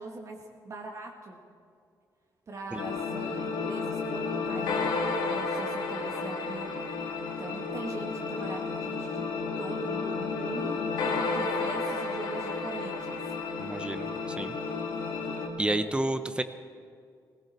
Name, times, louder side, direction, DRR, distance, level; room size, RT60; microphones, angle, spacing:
voice 1, 0.0-1.4 2.5-6.7 7.4-9.2 9.6-13.2, right 2 dB, 45° right, 1 dB, 1.4 m, -42 dB
sound 1, 2.8-15.5, left 4 dB, 90° left, 1.8 m, -32 dB
voice 2, 13.6-14.1 14.4-14.5 15.6-16.4, right 2 dB, 15° right, 11 dB, 0.6 m, -29 dB
19.0 x 15.5 x 4.3 m, 2.3 s
cardioid pair, 110°, 8 cm